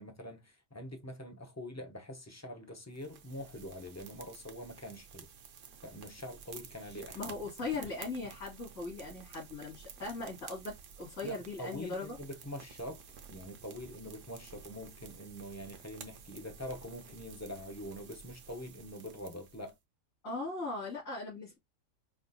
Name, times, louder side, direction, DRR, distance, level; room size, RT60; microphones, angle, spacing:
voice 1, 0.0-5.3 5.8-7.2 11.2-13.0 13.3-19.8, left 1 dB, 20° left, 0.5 m, -44 dB
sound 1, 2.9-19.7, right 6 dB, 65° right, 1.1 m, -52 dB
voice 2, 7.1-12.2 20.2-21.6, left 3 dB, 70° left, 3.0 m, -39 dB
5.5 x 2.4 x 2.6 m
omnidirectional pair, 1.4 m